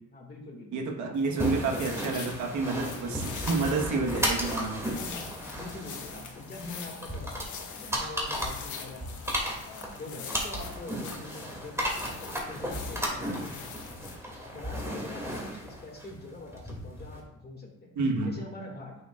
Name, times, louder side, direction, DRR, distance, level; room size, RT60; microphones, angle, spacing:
voice 1, 0.1-1.9 4.9-9.1 9.6-13.9 14.5-18.0 18.2-19.0, left 2 dB, 35° left, 0 dB, 2.1 m, -44 dB
voice 2, 0.7-4.9 18.0-18.3, right 3 dB, 75° right, 2 dB, 1.4 m, -29 dB
sound 1, 1.1-14.2, left 6 dB, 75° left, 1.3 m, -43 dB
sound 2, 1.4-17.2, equal, 10° right, 2.5 m, -35 dB
8.6 x 6.8 x 2.5 m, 0.80 s
cardioid pair, 90°, 30 cm